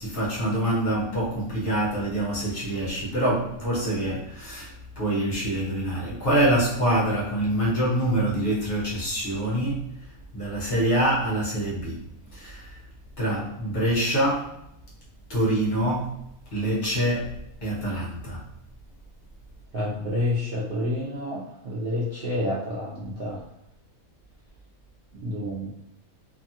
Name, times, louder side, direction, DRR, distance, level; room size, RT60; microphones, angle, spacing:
voice 1, 0.0-10.0 10.3-12.8 13.2-14.6 15.3-16.2 16.5-18.5, right 1 dB, 50° left, 0.9 m, -25 dB
voice 2, 19.7-23.4 25.1-25.7, left 1 dB, 55° right, 0.6 m, -29 dB
2.7 x 2.3 x 2.7 m
omnidirectional pair, 1.5 m